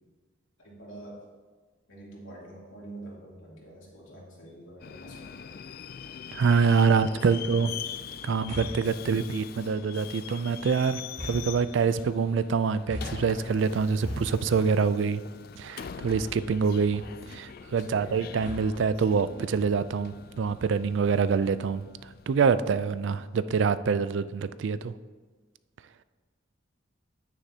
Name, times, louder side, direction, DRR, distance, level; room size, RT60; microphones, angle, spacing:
voice 1, 0.6-1.2 1.9-5.6 6.7-7.7 17.8-18.3, right 1 dB, 80° left, -4 dB, 2.8 m, -46 dB
Subway metro underground, 4.8-23.2, left 8 dB, 50° left, 0.3 m, -43 dB
voice 2, 6.3-7.7 8.2-15.2 15.6-24.9, right 5 dB, 65° right, 15 dB, 0.4 m, -26 dB
sound 1, 7.2-7.6 8.5-9.0 10.1-10.7 11.2-12.1 12.9-13.4 14.0-14.7 16.1-16.6 16.9-17.4 18.4-18.9 19.6-20.1, left 1 dB, 35° right, 2.4 m, -40 dB
9.8 x 9.4 x 2.8 m, 1.4 s
head